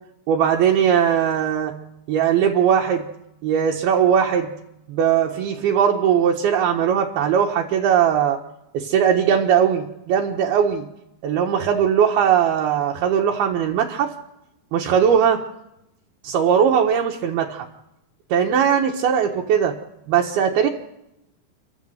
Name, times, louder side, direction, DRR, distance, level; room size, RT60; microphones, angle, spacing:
voice 1, 0.3-1.7 2.1-3.1 3.4-4.5 4.9-8.4 8.7-10.8 11.2-14.1 14.7-15.4 16.2-17.7 18.3-19.7 20.1-20.7, right 8 dB, 70° right, 0 dB, 2.9 m, -19 dB
30.0 x 11.5 x 7.8 m, 0.88 s
omnidirectional pair, 4.8 m